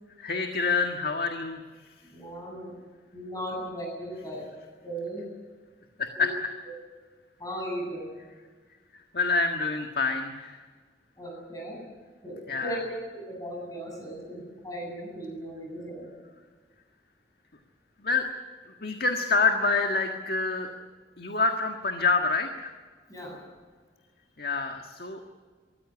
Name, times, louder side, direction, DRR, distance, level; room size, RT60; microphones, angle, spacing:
voice 1, 0.2-1.6 6.0-6.3 9.1-10.6 12.5-12.8 18.0-18.3 18.8-20.7 21.2-22.7 24.4-25.2, left 4 dB, 60° left, 4 dB, 1.7 m, -27 dB
voice 2, 2.1-2.7 3.1-4.5 4.8-5.2 6.1-6.3 7.4-8.1 11.2-11.8 12.2-12.8 13.1-16.1 23.1-23.4, right 1 dB, 20° left, -1 dB, 8.0 m, -37 dB
24.0 x 14.5 x 9.8 m, 1.5 s
head